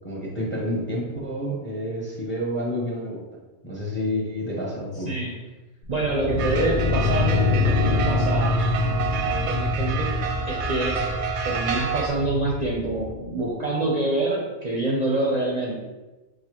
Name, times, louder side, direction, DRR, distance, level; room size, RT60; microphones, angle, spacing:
voice 1, 0.0-3.2 3.6-5.1, equal, 10° left, -4 dB, 0.6 m, -29 dB
sound 1, 5.8-13.1, left 3 dB, 60° left, 0.6 m, -25 dB
voice 2, 5.9-10.1 10.5-11.1 11.4-15.8, right 2 dB, 45° right, -3 dB, 0.6 m, -26 dB
sound 2, 6.4-12.1, right 7 dB, 85° right, 0.9 m, -29 dB
6.4 x 2.3 x 2.9 m, 1.1 s
omnidirectional pair, 1.2 m